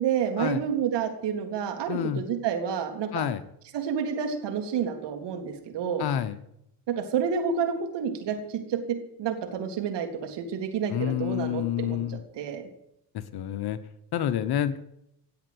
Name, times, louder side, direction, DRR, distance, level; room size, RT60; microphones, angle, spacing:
voice 1, 0.0-3.3 3.7-6.1 7.0-8.8 9.2-12.6, right 7 dB, 55° right, 6 dB, 3.4 m, -29 dB
voice 2, 1.9-2.2 3.1-3.4 6.0-6.4 10.9-12.2 13.1-13.8 14.1-14.8, left 10 dB, 50° left, 12 dB, 1.2 m, -28 dB
17.5 x 8.0 x 8.1 m, 0.78 s
hypercardioid pair, 80°, 50 cm